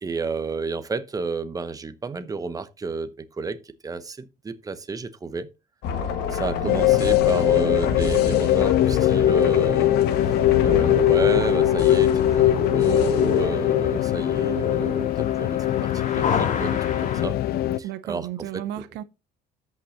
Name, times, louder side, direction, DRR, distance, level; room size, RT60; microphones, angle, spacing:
voice 1, 0.0-5.5 6.3-10.3 10.6-17.4 17.8-18.6, right 4 dB, 20° right, 0.9 m, -31 dB
sound 1, 5.8-13.5, left 6 dB, 90° left, 1.8 m, -29 dB
voice 2, 6.6-7.0 17.8-19.0, right 12 dB, 85° right, 0.8 m, -33 dB
sound 2, 6.7-17.8, left 13 dB, 70° left, 0.5 m, -21 dB
sound 3, 10.0-17.3, left 6 dB, 45° left, 1.7 m, -33 dB
13.5 x 5.8 x 2.9 m
cardioid pair, 110°, 17 cm